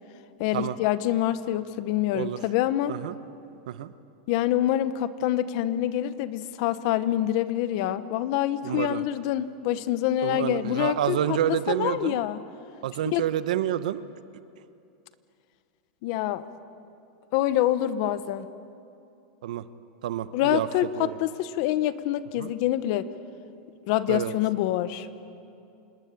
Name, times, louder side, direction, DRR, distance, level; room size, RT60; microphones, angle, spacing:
voice 1, 0.4-2.9 4.3-12.4 13.1-13.2 16.0-16.4 17.3-18.5 20.3-23.1 23.9-25.1, left 13 dB, 45° left, 13 dB, 1.0 m, -26 dB
voice 2, 8.6-9.0 10.2-12.2 12.8-14.0 19.4-19.6 20.0-20.7 20.9-21.2 22.4-22.5 24.1-24.3, right 11 dB, 90° right, 13 dB, 1.0 m, -28 dB
27.0 x 20.0 x 8.6 m, 2.6 s
supercardioid pair, 170°, 4 cm